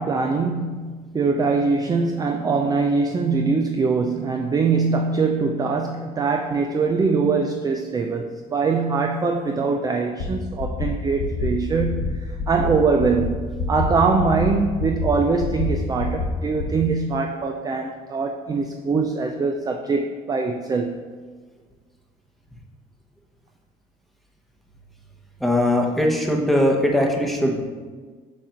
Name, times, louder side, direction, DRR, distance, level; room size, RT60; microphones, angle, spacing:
voice 1, 0.0-21.0, right 4 dB, 25° right, 3 dB, 0.4 m, -23 dB
sound 1, 10.2-10.3 10.6-10.9 11.2-11.5 11.8-12.1 12.4-12.7 13.0-13.3 13.6-13.8 14.2-14.5 14.8-15.1 15.4-15.7 16.0-16.3 16.6-16.7, left 4 dB, 75° left, 1.1 m, -26 dB
voice 2, 25.4-27.7, left 1 dB, ahead, 0 dB, 0.9 m, -20 dB
7.2 x 2.5 x 5.7 m, 1.5 s
cardioid pair, 110°, 17 cm